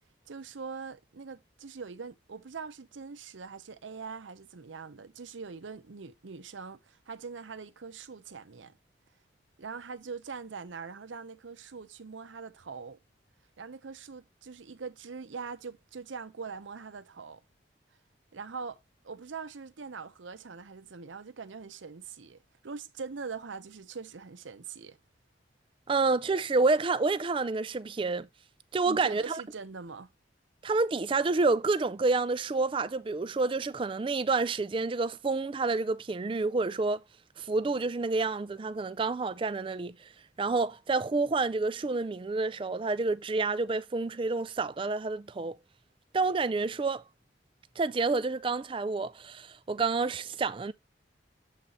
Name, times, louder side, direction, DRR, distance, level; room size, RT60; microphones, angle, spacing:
voice 1, 0.3-8.7 9.6-13.0 13.6-17.4 18.3-18.8 19.0-25.0 28.9-30.1, right 5 dB, 85° right, 0.7 m, -42 dB
voice 2, 25.9-28.3 28.7-29.4 30.6-37.0 37.4-40.1 40.4-45.6 46.1-47.0 47.8-50.7, right 3 dB, 25° right, 0.3 m, -29 dB
7.4 x 4.0 x 4.2 m
head